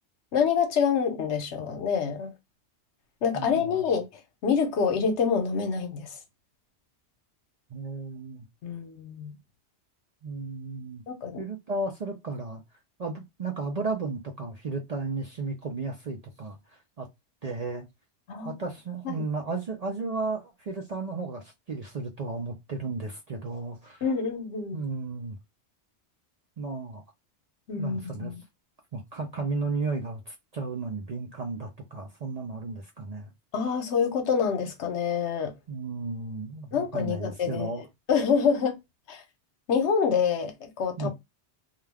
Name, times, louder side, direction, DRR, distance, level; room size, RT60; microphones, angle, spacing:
voice 1, 0.3-2.3 3.2-4.1 4.4-6.1 8.6-9.3 11.1-11.4 18.3-18.5 19.0-19.2 24.0-24.8 27.7-28.3 33.5-35.5 36.7-37.7 38.1-38.7 39.1-39.2 39.7-41.1, left 6 dB, 80° left, 1.0 m, -26 dB
voice 2, 3.3-3.7 7.7-8.5 10.2-11.0 11.4-12.6 13.0-16.6 17.0-17.1 17.4-17.9 18.4-24.0 24.7-25.4 26.6-27.0 27.8-28.3 28.9-33.3 35.7-37.8 41.0-41.1, right 3 dB, 50° right, 0.5 m, -34 dB
2.3 x 2.3 x 3.2 m
omnidirectional pair, 1.1 m